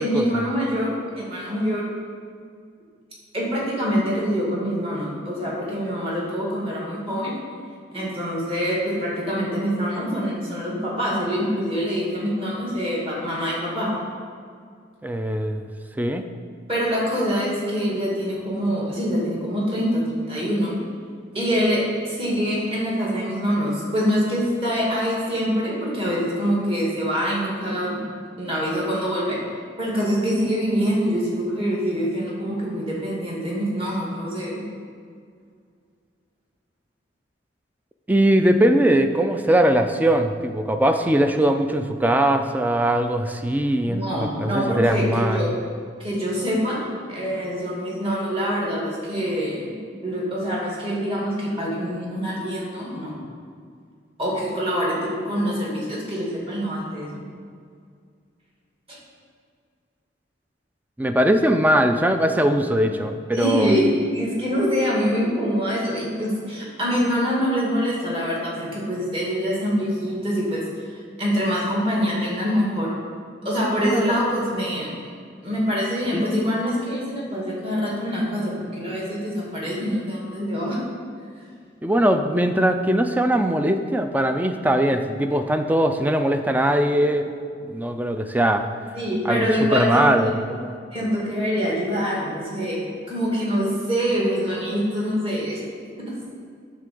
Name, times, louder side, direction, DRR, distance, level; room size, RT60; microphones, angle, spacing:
voice 1, 0.0-1.9 3.3-7.3 7.9-13.9 16.7-20.7 21.3-28.0 28.4-29.4 29.8-34.6 43.9-45.5 46.0-49.8 50.0-53.1 54.2-57.3 63.3-70.6 70.9-72.9 73.4-74.9 75.4-80.8 88.9-90.3 90.9-95.6, equal, 30° right, -5 dB, 2.2 m, -25 dB
voice 2, 15.0-15.7 16.0-16.2 38.1-45.6 61.0-63.8 73.8-74.2 76.1-76.2 81.8-87.3 87.6-88.7 89.2-90.7, right 1 dB, 10° right, 7 dB, 0.4 m, -21 dB
10.5 x 3.8 x 6.9 m, 2.2 s
head